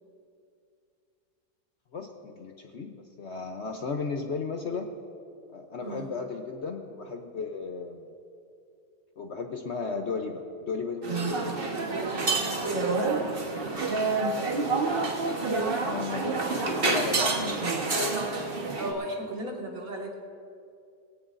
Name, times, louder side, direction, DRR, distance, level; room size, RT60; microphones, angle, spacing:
voice 1, 1.9-4.9 5.5-8.1 9.2-12.7 15.5-18.6, left 4 dB, 55° left, 4 dB, 0.9 m, -35 dB
voice 2, 5.8-6.1 11.9-13.2 13.6-14.3 18.8-20.1, right 1 dB, 60° right, -1 dB, 2.2 m, -36 dB
sound 1, 11.0-18.9, right 3 dB, 35° right, 1.3 m, -28 dB
20.0 x 17.0 x 2.6 m, 2.5 s
omnidirectional pair, 1.7 m